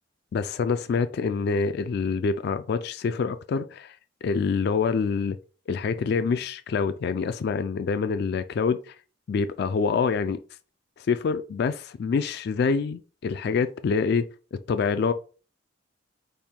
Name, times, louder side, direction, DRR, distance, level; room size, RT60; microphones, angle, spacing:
voice 1, 0.3-5.4 5.7-8.9 9.3-10.4 11.0-14.2 14.5-15.1, left 5 dB, 60° left, 0.3 m, -26 dB
5.3 x 2.2 x 4.4 m
head